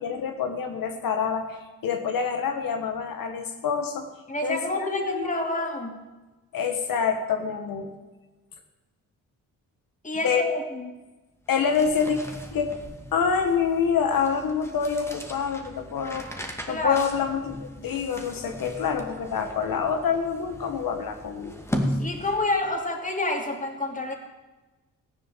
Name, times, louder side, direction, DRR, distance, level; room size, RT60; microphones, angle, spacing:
voice 1, 0.0-4.1 4.4-4.9 5.1-5.4 6.5-7.9 10.2-10.4 11.5-12.2 12.5-12.7 13.1-16.3 16.7-17.6 17.8-21.6, left 6 dB, 80° left, 5 dB, 1.6 m, -26 dB
voice 2, 4.3-6.0 10.0-10.9 16.7-17.0 22.0-24.1, left 2 dB, 25° left, 3 dB, 2.9 m, -28 dB
sound 1, 11.5-22.7, equal, 10° left, 2.2 m, -37 dB
15.0 x 11.0 x 7.4 m, 1.2 s
cardioid pair, 85°, 34 cm